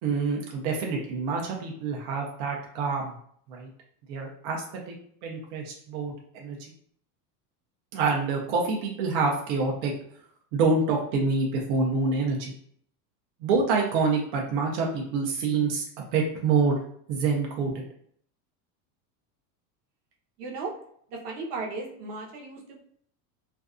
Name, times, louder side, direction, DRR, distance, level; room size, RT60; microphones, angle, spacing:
voice 1, 0.0-3.1 3.5-3.7 4.1-4.9 5.2-6.6 7.9-9.9 10.5-12.5 13.4-15.8 16.1-16.8 17.1-17.7, right 4 dB, 50° right, -1 dB, 0.5 m, -26 dB
voice 2, 20.4-20.7 21.1-22.8, right 3 dB, 80° right, -1 dB, 0.9 m, -35 dB
2.5 x 2.2 x 2.4 m, 0.63 s
supercardioid pair, 170°, 47 cm